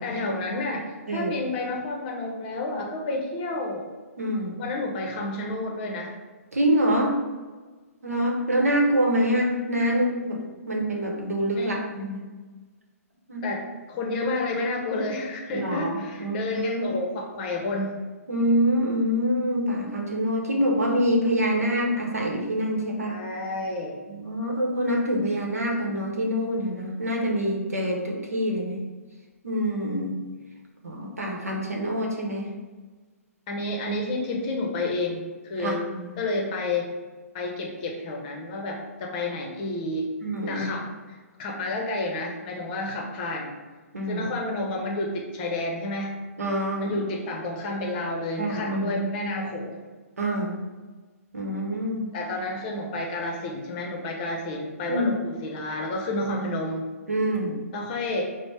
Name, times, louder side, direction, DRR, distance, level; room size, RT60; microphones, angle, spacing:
voice 1, 0.0-3.9 4.6-6.1 11.6-11.8 13.4-17.9 23.0-24.0 33.5-35.8 36.2-36.9 37.3-40.1 40.5-40.9 41.4-43.5 44.0-46.1 46.8-49.8 52.1-56.9 57.7-58.3, left 2 dB, 35° left, 0 dB, 0.7 m, -30 dB
voice 2, 4.2-4.5 6.5-7.2 8.0-10.4 10.7-12.2 13.3-13.4 15.5-16.5 16.8-16.9 18.3-23.2 24.1-28.8 29.4-30.1 30.8-32.5 35.6-36.1 40.2-40.7 43.9-44.3 46.4-46.9 48.4-49.0 50.2-50.5 51.3-52.1 54.9-55.1 57.1-57.6, equal, 75° right, -1 dB, 0.9 m, -25 dB
5.1 x 2.1 x 3.3 m, 1.3 s
figure-of-eight pair, 125°, 8 cm